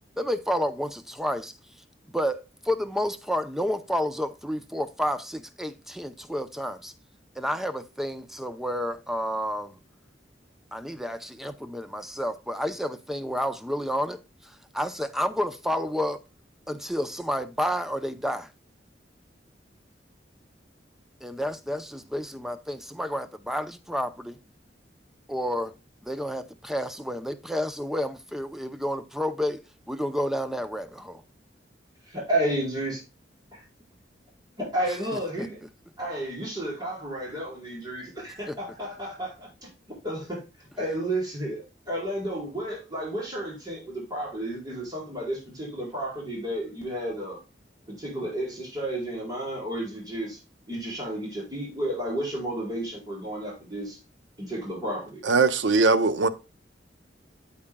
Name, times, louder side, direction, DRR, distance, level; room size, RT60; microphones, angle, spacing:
voice 1, 0.2-1.5 2.1-6.9 7.4-9.8 10.7-16.2 16.7-18.5 21.2-24.4 25.3-25.7 26.0-31.2 35.1-35.5 38.5-38.6, equal, ahead, 0.5 m, -30 dB
voice 2, 32.1-33.0 34.6-35.6 36.0-40.4 40.8-47.4 47.9-50.4 50.7-54.0 54.4-55.2, right 1 dB, 25° right, 4.8 m, -32 dB
voice 3, 55.2-56.3, right 4 dB, 85° right, 0.7 m, -20 dB
8.7 x 8.5 x 2.2 m
head